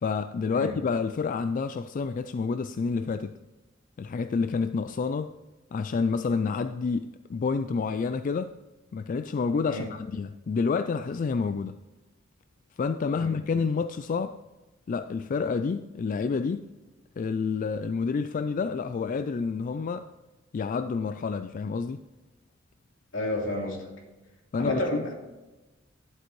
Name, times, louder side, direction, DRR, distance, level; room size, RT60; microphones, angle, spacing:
voice 1, 0.0-3.3 4.0-5.3 5.7-8.5 8.9-11.7 12.8-14.4 14.9-16.7 17.2-20.1 20.5-22.0 24.5-25.1, left 5 dB, 40° left, 10 dB, 0.3 m, -29 dB
voice 2, 23.1-23.9 24.6-25.2, left 1 dB, 80° left, -1 dB, 2.8 m, -31 dB
11.0 x 7.8 x 3.2 m, 1.1 s
head